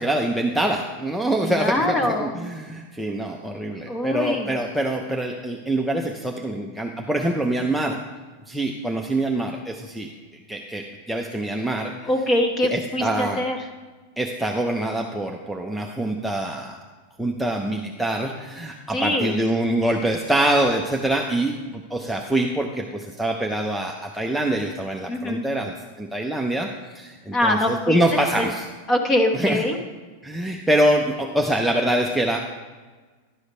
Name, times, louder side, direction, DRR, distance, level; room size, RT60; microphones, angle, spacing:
voice 1, 0.0-8.0 8.5-10.1 10.5-12.1 12.7-13.4 14.2-16.8 17.2-26.7 26.9-28.6 29.3-29.6 30.2-32.5, right 1 dB, ahead, 0 dB, 0.5 m, -25 dB
voice 2, 1.4-2.4 3.9-4.6 12.0-13.6 18.9-19.4 25.1-25.4 27.3-28.0 28.4-28.5 28.9-29.8, left 1 dB, 20° left, 5 dB, 1.0 m, -23 dB
11.5 x 4.9 x 5.4 m, 1.4 s
supercardioid pair, 155°, 0 cm